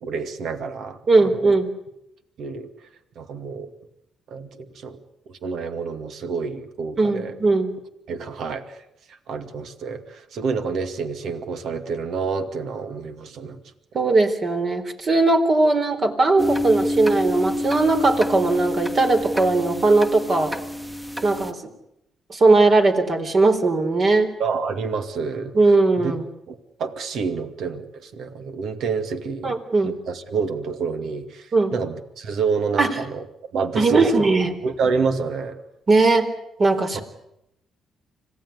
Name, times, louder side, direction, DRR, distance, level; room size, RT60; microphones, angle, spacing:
voice 1, 0.0-1.5 2.4-2.7 3.2-3.7 4.3-5.0 5.3-7.4 8.1-8.8 9.1-13.6 24.4-25.6 26.0-26.1 26.5-33.3 33.5-34.2 34.6-35.6 36.9-37.0, right 5 dB, 70° right, 8 dB, 2.3 m, -28 dB
voice 2, 1.1-1.7 7.0-7.7 13.9-20.5 21.2-21.6 22.3-24.3 25.5-26.2 29.4-29.9 31.5-31.7 32.8-32.9 33.8-34.5 35.9-36.3 36.6-37.0, right 3 dB, 45° right, 6 dB, 4.1 m, -19 dB
sound 1, 16.4-21.5, left 1 dB, 10° right, 1.7 m, -28 dB
26.0 x 17.0 x 9.8 m, 0.84 s
cardioid pair, 90°, 0 cm